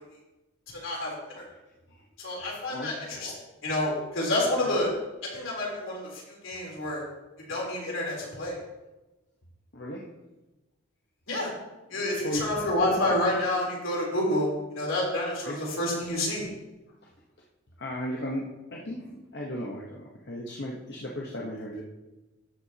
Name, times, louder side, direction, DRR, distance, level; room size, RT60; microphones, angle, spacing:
voice 1, 0.7-1.4 2.2-4.9 5.3-7.0 7.5-8.6 11.3-11.5 11.9-16.5, left 1 dB, 70° left, -4 dB, 3.6 m, -29 dB
voice 2, 9.7-10.1 11.9-12.5 15.4-15.6 17.8-21.8, equal, 50° left, -3 dB, 1.1 m, -36 dB
13.0 x 7.7 x 2.9 m, 1.0 s
head